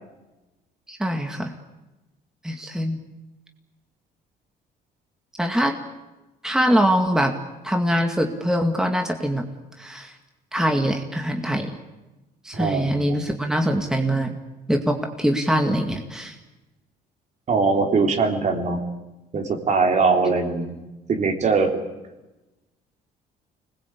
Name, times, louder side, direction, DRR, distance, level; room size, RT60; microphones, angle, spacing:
voice 1, 0.9-1.5 2.4-3.0 5.4-5.8 6.4-7.3 7.6-9.5 9.8-10.1 10.5-11.7 12.4-14.4 14.7-16.4, equal, 5° right, 4 dB, 2.1 m, -23 dB
voice 2, 12.5-13.2 17.5-18.8 19.3-20.8 21.1-21.8, right 4 dB, 45° right, 4 dB, 3.8 m, -21 dB
25.5 x 20.5 x 8.5 m, 1.0 s
cardioid pair, 110°, 17 cm